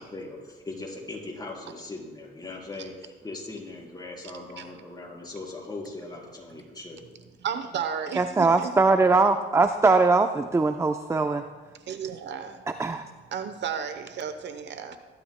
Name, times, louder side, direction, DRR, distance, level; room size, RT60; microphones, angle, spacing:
voice 1, 0.0-7.0, left 2 dB, 20° left, 4.0 m, -39 dB
voice 2, 7.4-8.7 11.7-12.6 13.3-15.0, right 7 dB, 60° right, 0.9 m, -33 dB
voice 3, 8.2-11.4 12.8-13.0, right 3 dB, 15° right, 0.5 m, -21 dB
22.0 x 12.0 x 2.2 m
cardioid pair, 90°, 20 cm